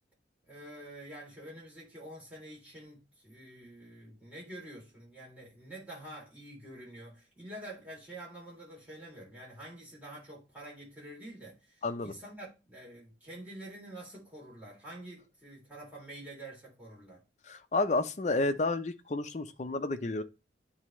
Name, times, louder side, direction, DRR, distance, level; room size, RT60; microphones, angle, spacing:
voice 1, 0.5-17.2, right 1 dB, 10° right, 3.0 m, -47 dB
voice 2, 11.8-12.1 17.5-20.2, left 2 dB, 40° left, 0.5 m, -31 dB
9.6 x 3.4 x 3.0 m
head